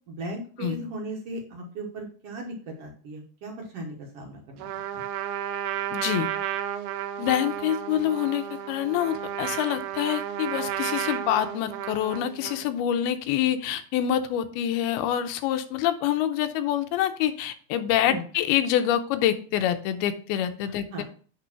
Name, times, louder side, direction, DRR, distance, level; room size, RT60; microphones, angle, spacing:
voice 1, 0.1-4.7 4.9-5.0 18.0-18.2 20.9-21.0, right 2 dB, 75° right, 0 dB, 1.4 m, -37 dB
Trumpet, 4.6-12.7, right 10 dB, 90° right, 2.6 m, -32 dB
voice 2, 5.9-6.3 7.2-21.0, left 11 dB, 90° left, 9 dB, 2.6 m, -26 dB
9.1 x 3.4 x 5.8 m, 0.42 s
omnidirectional pair, 4.4 m